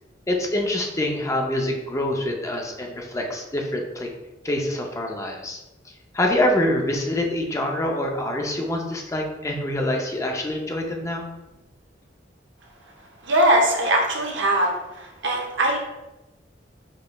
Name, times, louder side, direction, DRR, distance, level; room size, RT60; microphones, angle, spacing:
voice 1, 0.3-4.1 4.4-5.6 5.8-11.3, left 1 dB, 15° left, 1 dB, 0.4 m, -25 dB
voice 2, 13.2-15.8, right 1 dB, 75° right, 0 dB, 0.8 m, -21 dB
5.0 x 3.0 x 2.2 m, 1.0 s
head